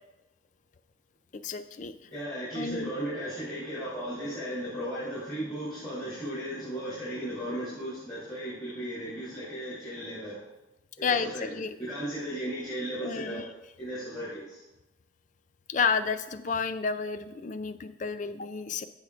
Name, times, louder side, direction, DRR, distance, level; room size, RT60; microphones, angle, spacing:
voice 1, 1.3-2.0 2.5-2.9 11.0-11.7 13.0-13.4 15.7-18.9, left 5 dB, 40° left, 12 dB, 0.4 m, -31 dB
voice 2, 2.1-10.4 11.0-11.5 11.8-13.4 13.8-14.6, right 1 dB, 20° left, -11 dB, 3.2 m, -36 dB
15.0 x 5.7 x 2.5 m, 0.96 s
head